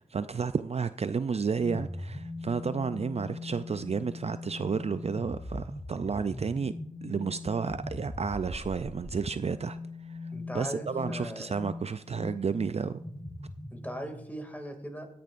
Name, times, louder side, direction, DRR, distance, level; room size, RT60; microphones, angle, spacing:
voice 1, 0.0-6.7 7.0-9.8 10.0-10.2 10.5-13.1, right 5 dB, 50° right, 0.4 m, -31 dB
sound 1, 1.5-14.4, left 2 dB, 35° left, 1.9 m, -41 dB
voice 2, 10.3-11.6 13.7-15.1, equal, 10° left, 2.3 m, -39 dB
17.0 x 10.5 x 2.5 m
cardioid pair, 45°, 14 cm